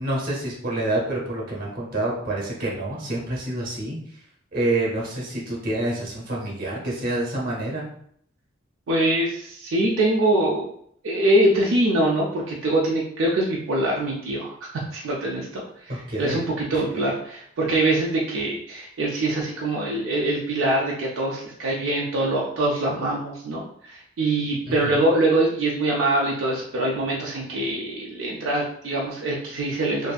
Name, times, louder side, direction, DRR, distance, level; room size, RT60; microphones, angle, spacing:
voice 1, 0.0-4.0 4.5-7.8 15.9-16.4 16.7-16.8 24.7-25.0, right 1 dB, 45° right, -3 dB, 0.8 m, -27 dB
voice 2, 8.9-10.7 11.0-30.1, right 1 dB, 75° right, -3 dB, 0.4 m, -24 dB
2.6 x 2.4 x 2.2 m, 0.66 s
head